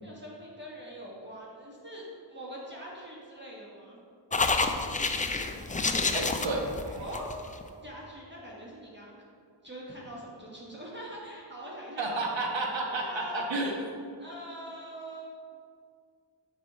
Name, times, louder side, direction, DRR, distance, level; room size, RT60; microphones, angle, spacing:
voice 1, 0.0-4.0 7.0-7.3 7.8-9.2 9.6-12.2 12.8-13.5 14.2-15.3, equal, 25° right, -5 dB, 1.4 m, -43 dB
sound 1, 4.3-7.6, left 3 dB, 20° left, 0.4 m, -29 dB
voice 2, 6.1-7.0 12.0-13.8, right 2 dB, 75° right, 0 dB, 1.3 m, -31 dB
6.3 x 5.6 x 4.1 m, 2.2 s
wide cardioid pair, 70°, 46 cm